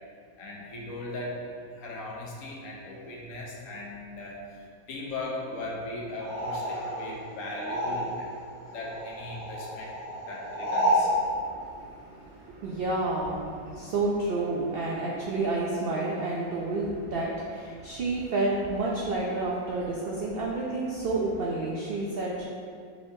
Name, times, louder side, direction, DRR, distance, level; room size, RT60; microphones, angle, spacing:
voice 1, 0.4-4.6 4.9-8.3 8.7-9.9 10.3-11.1, left 2 dB, 70° left, -3 dB, 1.1 m, -38 dB
sound 1, 6.2-8.4 8.7-11.2, equal, 85° left, 1.5 m, -30 dB
voice 2, 11.4-22.5, right 2 dB, 85° right, -3 dB, 0.5 m, -30 dB
4.8 x 3.6 x 2.6 m, 2.2 s
omnidirectional pair, 1.5 m